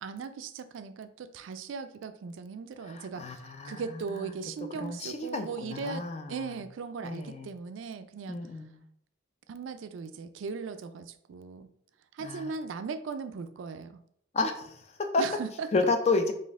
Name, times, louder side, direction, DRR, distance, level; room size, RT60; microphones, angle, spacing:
voice 1, 0.0-8.4 9.5-11.7 12.1-14.0 15.2-15.7, right 5 dB, 90° right, 10 dB, 0.4 m, -38 dB
voice 2, 2.9-4.4 4.8-6.6 7.0-7.5 8.3-8.8 12.2-12.5 14.3-15.3 15.7-16.3, left 3 dB, 35° left, 5 dB, 0.4 m, -31 dB
4.1 x 2.5 x 3.5 m, 0.69 s
head